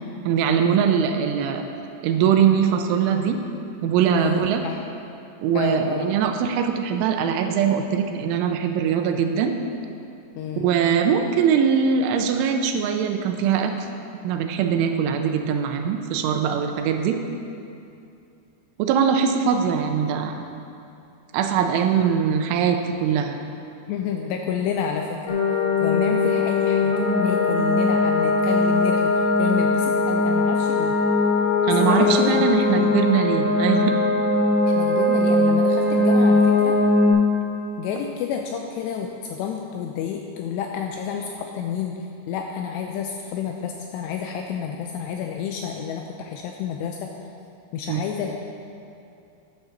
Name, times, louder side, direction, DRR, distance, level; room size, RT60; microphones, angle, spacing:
voice 1, 0.3-1.6 2.0-3.4 3.8-4.6 5.4-9.5 10.6-13.9 14.2-17.2 18.8-20.4 21.3-23.4 31.7-34.0 47.9-48.0, right 7 dB, 90° right, 5 dB, 3.1 m, -22 dB
voice 2, 4.1-4.8 5.5-6.1 10.4-10.7 23.9-31.0 31.8-33.0 34.7-36.8 37.8-47.1 47.7-48.4, left 7 dB, 85° left, 2 dB, 2.4 m, -30 dB
sound 1, 25.3-37.1, left 2 dB, 70° left, 3.9 m, -20 dB
10.5 x 7.3 x 6.5 m, 2.6 s
omnidirectional pair, 5.5 m